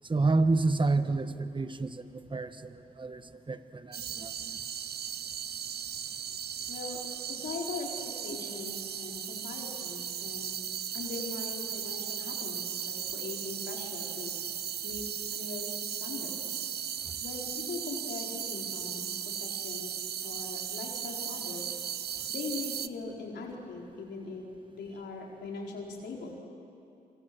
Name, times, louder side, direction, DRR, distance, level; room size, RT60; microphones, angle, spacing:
voice 1, 0.1-4.6, right 3 dB, 30° right, 10 dB, 1.4 m, -29 dB
sound 1, 3.9-22.9, right 8 dB, 70° right, 0.8 m, -37 dB
voice 2, 6.7-7.0 7.3-10.5 10.9-14.3 14.8-15.0 15.3-15.7 16.0-16.6 17.2-21.8 22.3-26.4, left 4 dB, 85° left, -1 dB, 4.5 m, -41 dB
26.0 x 26.0 x 7.9 m, 2.7 s
cardioid pair, 75°, 17 cm